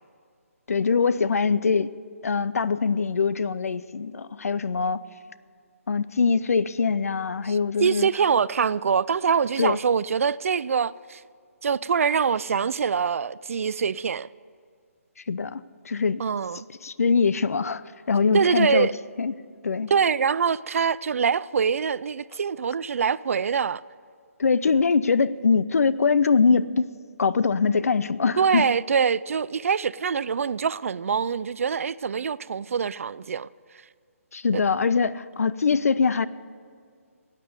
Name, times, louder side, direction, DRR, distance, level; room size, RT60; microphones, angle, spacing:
voice 1, 0.7-1.9 2.2-5.0 5.9-8.1 9.6-9.8 15.3-16.2 16.8-17.8 18.1-18.9 19.2-19.3 19.6-19.9 24.4-26.9 27.2-28.6 34.3-36.3, left 5 dB, 75° left, 0.6 m, -23 dB
voice 2, 7.5-11.2 11.6-14.3 16.2-16.6 18.3-18.9 19.9-23.8 28.4-33.5 34.5-34.6, right 6 dB, 65° right, 0.4 m, -24 dB
15.5 x 9.1 x 8.1 m
hypercardioid pair, 155°, 8 cm